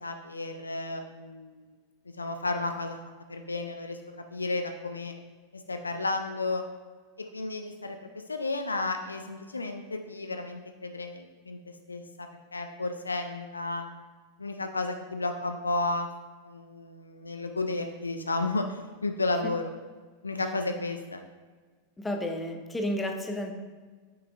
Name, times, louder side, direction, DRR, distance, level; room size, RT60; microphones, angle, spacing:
voice 1, 0.0-1.8 2.2-3.0 3.3-4.0 4.3-5.1 5.5-6.7 7.2-13.8 14.4-16.1 16.4-19.7 20.2-21.2, left 2 dB, 80° left, 6 dB, 0.4 m, -33 dB
voice 2, 22.0-23.6, left 1 dB, 10° left, 4 dB, 0.7 m, -32 dB
6.8 x 6.1 x 2.3 m, 1.4 s
figure-of-eight pair, 90°, 0 cm